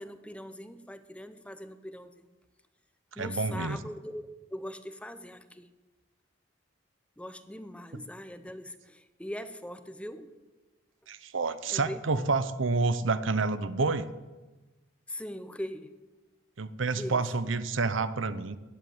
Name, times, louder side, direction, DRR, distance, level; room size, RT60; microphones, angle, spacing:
voice 1, 0.0-2.3 3.2-5.7 7.2-10.3 11.7-12.0 15.1-16.0 16.9-17.2, left 1 dB, 5° left, 11 dB, 0.7 m, -41 dB
voice 2, 3.2-3.8 7.9-8.0 11.1-14.1 16.6-18.6, right 3 dB, 80° right, 14 dB, 0.8 m, -29 dB
14.0 x 7.9 x 9.7 m, 1.2 s
head